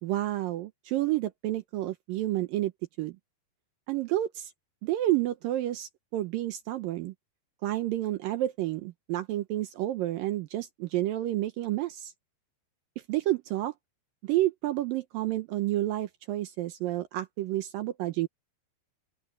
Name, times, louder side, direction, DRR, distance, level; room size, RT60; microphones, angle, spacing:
voice 1, 0.0-2.7 3.0-3.2 3.9-4.5 4.8-7.1 7.6-12.1 13.1-13.7 14.2-18.3, right 15 dB, 80° right, 2.1 m, -30 dB
open air
omnidirectional pair, 4.8 m